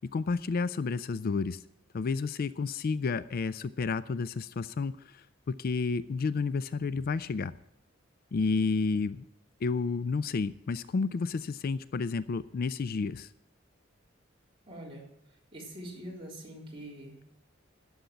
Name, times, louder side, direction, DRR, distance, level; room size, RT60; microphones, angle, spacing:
voice 1, 0.1-1.6 1.9-7.5 8.3-9.3 9.6-13.3, left 4 dB, 50° left, 16 dB, 0.4 m, -31 dB
voice 2, 14.7-15.0 15.5-17.2, right 1 dB, 30° right, -3 dB, 3.7 m, -44 dB
11.5 x 7.1 x 9.2 m, 0.79 s
head